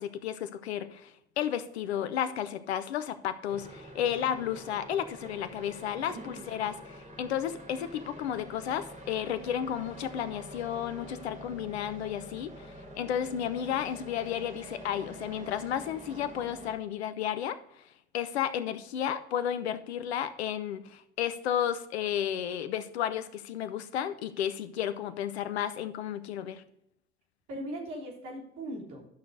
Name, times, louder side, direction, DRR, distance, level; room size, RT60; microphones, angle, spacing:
voice 1, 0.0-17.8 18.1-26.6, left 10 dB, 85° left, 12 dB, 0.7 m, -33 dB
sound 1, 3.5-16.7, equal, 25° right, 3.5 m, -47 dB
voice 2, 6.1-6.5 27.5-29.0, right 1 dB, 65° right, -1 dB, 3.6 m, -39 dB
11.0 x 6.5 x 3.9 m, 0.75 s
hypercardioid pair, 50°, 32 cm